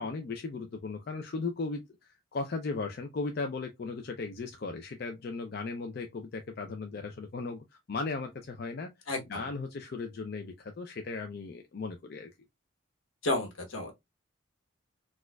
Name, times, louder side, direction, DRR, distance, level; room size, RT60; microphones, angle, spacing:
voice 1, 0.0-8.9 9.3-12.3, left 3 dB, 50° left, 0.4 m, -37 dB
voice 2, 9.1-9.4 13.2-13.9, left 2 dB, 80° left, 1.1 m, -32 dB
4.1 x 2.4 x 2.2 m
head